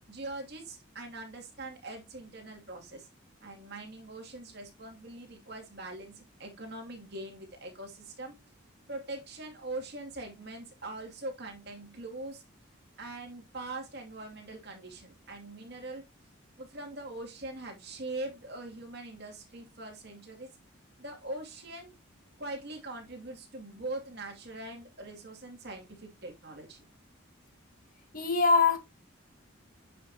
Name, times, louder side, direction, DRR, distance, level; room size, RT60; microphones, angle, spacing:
voice 1, 0.1-3.1 3.4-8.3 8.9-12.4 13.0-16.0 16.6-20.5 21.0-21.9 22.4-26.8, right 2 dB, 50° right, 2.5 m, -42 dB
voice 2, 28.1-28.8, left 4 dB, 40° left, 1.9 m, -23 dB
9.3 x 5.6 x 2.8 m
head